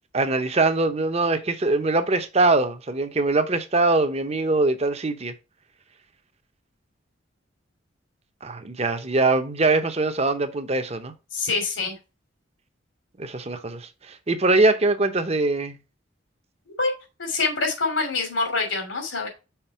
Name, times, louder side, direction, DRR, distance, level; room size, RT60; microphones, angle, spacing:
voice 1, 0.1-5.3 8.4-11.1 13.2-15.8, right 2 dB, 35° right, 0.8 m, -22 dB
voice 2, 11.3-11.9 16.7-16.9 17.2-19.3, left 3 dB, 85° left, 2.8 m, -25 dB
5.9 x 4.4 x 4.4 m
head